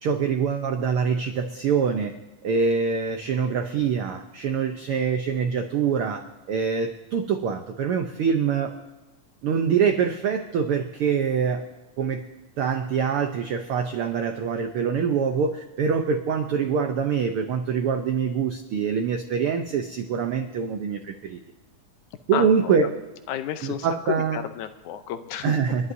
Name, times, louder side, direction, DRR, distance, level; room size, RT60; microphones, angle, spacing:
voice 1, 0.0-2.1 2.4-8.7 9.4-11.6 12.0-12.2 12.6-21.4 22.3-22.9 23.6-24.4 25.4-25.9, right 6 dB, 90° right, 6 dB, 1.2 m, -24 dB
voice 2, 22.3-22.9 23.3-25.6, left 10 dB, 80° left, 9 dB, 2.1 m, -31 dB
30.0 x 11.0 x 2.7 m, 1.1 s
omnidirectional pair, 3.6 m